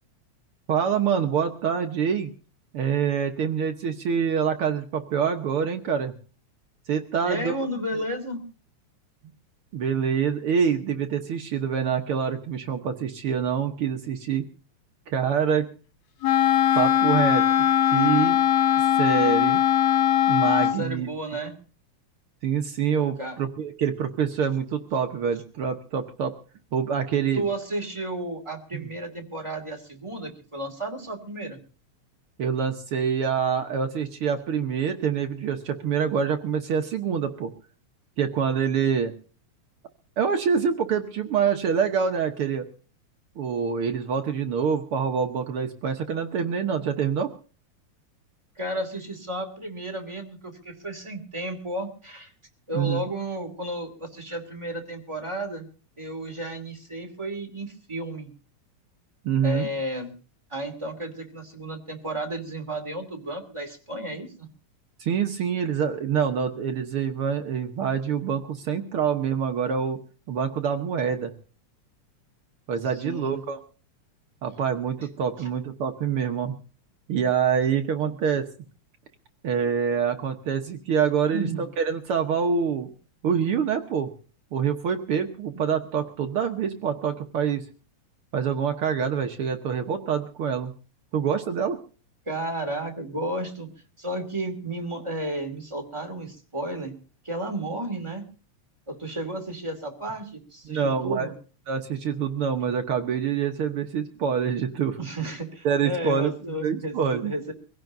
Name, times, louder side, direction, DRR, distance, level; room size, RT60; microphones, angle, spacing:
voice 1, 0.7-2.3 2.7-6.1 6.9-7.6 9.7-14.4 15.1-15.7 16.7-18.4 19.0-19.6 20.3-21.1 22.4-26.4 26.7-27.5 32.4-37.5 38.2-39.1 40.2-42.7 43.4-47.3 52.7-53.0 59.2-59.7 65.0-70.0 70.3-71.3 72.7-73.6 74.4-76.6 77.1-78.5 79.4-81.5 81.8-82.9 83.2-84.1 84.5-87.6 88.3-90.7 91.1-91.8 100.6-101.3 101.7-105.0 105.6-106.3 106.6-107.3, right 7 dB, 60° right, 5 dB, 1.6 m, -26 dB
voice 2, 7.2-8.4 20.8-21.5 23.2-23.4 27.3-31.6 48.6-52.3 52.7-55.7 56.0-58.3 59.4-60.1 60.5-64.5 73.0-73.4 75.4-75.5 78.1-78.2 81.3-81.7 92.3-93.7 94.0-96.9 97.2-98.2 98.9-101.3 105.0-106.9 107.2-107.5, right 1 dB, 10° right, 2 dB, 2.1 m, -32 dB
Wind instrument woodwind instrument, 16.2-20.8, left 10 dB, 75° left, 2.8 m, -20 dB
24.0 x 16.5 x 2.7 m, 0.37 s
omnidirectional pair, 3.4 m